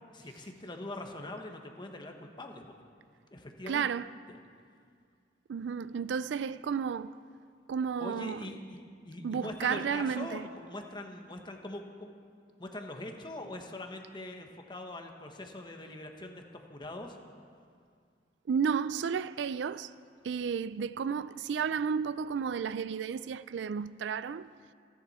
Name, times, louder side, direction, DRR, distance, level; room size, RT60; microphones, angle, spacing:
voice 1, 0.1-2.6 3.3-3.9 8.0-12.1 12.6-17.2, left 1 dB, 25° left, 1.2 m, -42 dB
voice 2, 3.7-4.1 5.5-7.1 7.7-8.5 9.2-10.5 18.5-19.9 20.2-24.5, right 6 dB, 75° right, 0.4 m, -32 dB
27.5 x 10.5 x 4.3 m
head